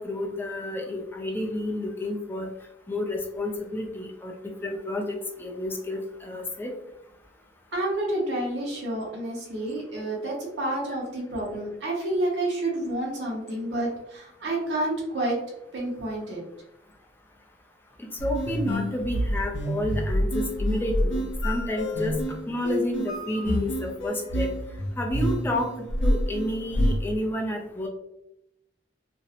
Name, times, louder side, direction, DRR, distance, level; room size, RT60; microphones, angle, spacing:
voice 1, 0.0-2.5 2.9-4.3 4.6-6.7 18.0-22.2 22.5-24.5 25.0-25.7 26.0-27.9, left 1 dB, 10° left, 1 dB, 0.4 m, -30 dB
voice 2, 7.7-15.4 15.7-16.4, right 1 dB, 85° right, -4 dB, 0.7 m, -29 dB
sound 1, 18.2-27.0, equal, 80° left, 0.5 m, -28 dB
2.5 x 2.0 x 2.7 m, 0.84 s
head